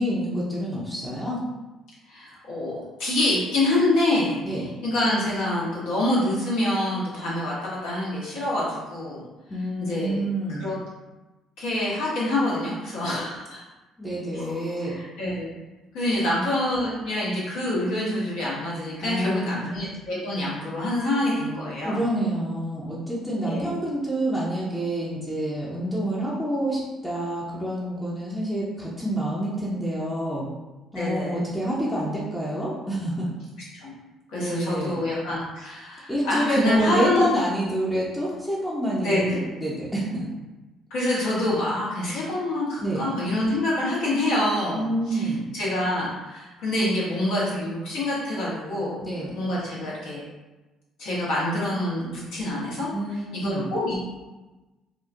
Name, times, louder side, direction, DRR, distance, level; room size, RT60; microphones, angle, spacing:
voice 1, 0.0-1.4 4.4-4.7 9.5-10.7 14.0-14.9 19.0-19.7 21.8-30.5 30.9-33.3 34.4-35.0 36.1-40.3 42.8-43.0 44.7-45.4 49.0-49.3 52.9-53.7, right 1 dB, 10° left, -7 dB, 0.8 m, -27 dB
voice 2, 2.1-9.2 9.8-10.2 10.5-10.7 11.6-13.6 14.3-15.5 15.9-22.0 23.4-23.7 30.9-31.3 33.8-33.9 34.3-37.3 39.0-39.4 40.9-49.0 49.3-50.2 51.0-52.9 53.3-54.0, left 1 dB, 60° left, -7 dB, 1.2 m, -26 dB
4.2 x 2.4 x 2.5 m, 1.1 s
figure-of-eight pair, 50°, 0 cm